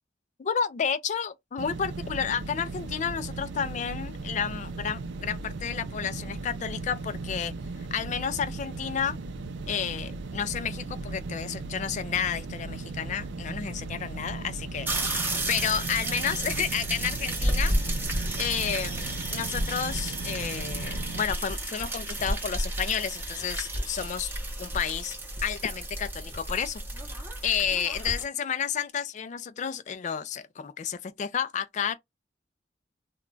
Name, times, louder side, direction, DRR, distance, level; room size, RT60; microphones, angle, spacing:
voice 1, 0.4-7.5 7.9-9.2 9.7-17.7 18.4-24.3 24.6-25.2 25.4-26.8 27.4-32.0, left 7 dB, 40° left, 0.3 m, -31 dB
sound 1, 1.6-21.2, right 3 dB, 80° right, 0.5 m, -37 dB
sound 2, 14.8-28.2, right 1 dB, 10° right, 0.8 m, -32 dB
2.2 x 2.2 x 3.7 m
head